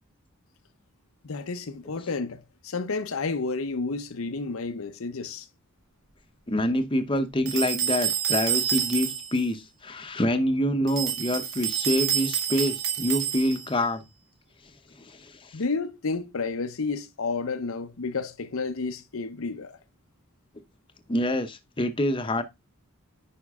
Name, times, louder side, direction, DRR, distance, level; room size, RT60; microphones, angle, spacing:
voice 1, 1.2-5.5 15.5-19.8, left 4 dB, 70° left, 0.7 m, -31 dB
voice 2, 6.5-14.0 15.1-15.6 21.1-22.4, left 1 dB, 25° left, 0.8 m, -26 dB
sound 1, 7.5-9.4 10.9-13.8, right 9 dB, 65° right, 2.0 m, -28 dB
9.7 x 5.2 x 3.5 m
head